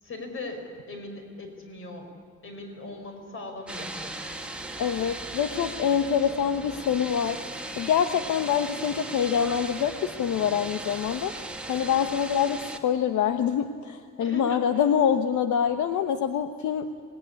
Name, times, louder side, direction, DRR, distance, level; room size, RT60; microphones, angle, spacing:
voice 1, 0.0-2.1 2.4-4.2 14.2-14.8, left 2 dB, 45° left, 4 dB, 5.4 m, -39 dB
sound 1, 3.7-12.8, right 2 dB, 5° right, 1.7 m, -37 dB
voice 2, 4.8-7.4 7.7-11.3 11.7-16.9, left 8 dB, 75° left, 8 dB, 1.1 m, -25 dB
26.0 x 19.5 x 9.8 m, 2.2 s
cardioid pair, 155°, 30 cm